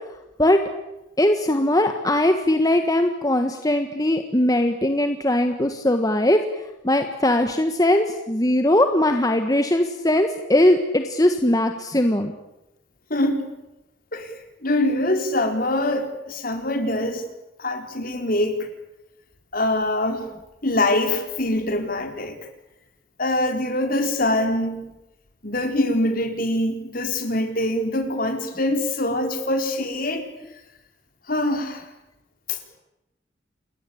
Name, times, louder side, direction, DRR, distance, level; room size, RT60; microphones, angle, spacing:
voice 1, 1.2-6.4 6.8-12.3, left 1 dB, 20° left, 6 dB, 1.5 m, -20 dB
voice 2, 13.1-13.5 14.1-14.3 14.6-17.2 17.6-18.7 19.5-20.3 20.6-22.4 23.2-24.9 25.4-30.3 31.3-31.9 32.5-32.6, left 1 dB, 50° left, 6 dB, 4.2 m, -24 dB
28.5 x 21.5 x 8.7 m, 0.95 s
head